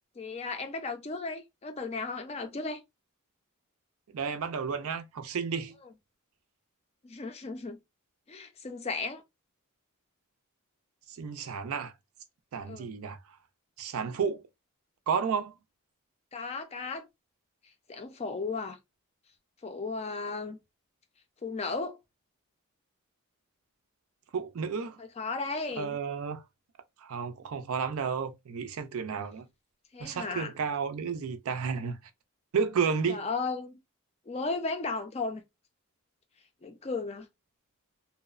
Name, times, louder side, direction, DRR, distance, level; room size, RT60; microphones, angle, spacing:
voice 1, 0.2-2.8 7.0-7.8 8.3-9.2 12.7-13.0 16.3-17.1 17.9-18.8 19.6-20.6 21.4-22.0 25.0-26.0 29.9-30.5 33.1-33.8 34.3-35.4 36.6-37.3, left 3 dB, 30° left, 0.4 m, -35 dB
voice 2, 4.1-5.8 11.1-11.9 12.5-13.2 13.8-14.4 15.1-15.5 24.3-25.0 25.8-26.4 27.0-29.5 30.0-32.0 32.5-33.3, right 6 dB, 70° right, 0.4 m, -32 dB
2.8 x 2.0 x 2.4 m
head